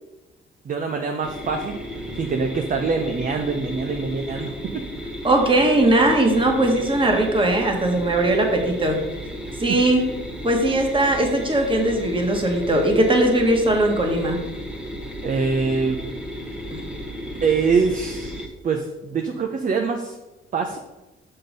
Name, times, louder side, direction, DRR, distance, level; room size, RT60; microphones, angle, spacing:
voice 1, 0.6-1.8 2.2-4.8 15.2-16.0 17.4-20.2 20.5-20.8, right 5 dB, 40° right, 4 dB, 0.7 m, -24 dB
sound 1, 1.2-18.5, equal, 5° right, 1.1 m, -34 dB
voice 2, 5.2-9.0 9.6-10.0 10.4-14.4 16.7-16.8, right 1 dB, 25° right, 2 dB, 1.7 m, -19 dB
5.9 x 5.6 x 5.4 m, 1.1 s
cardioid pair, 90°, 20 cm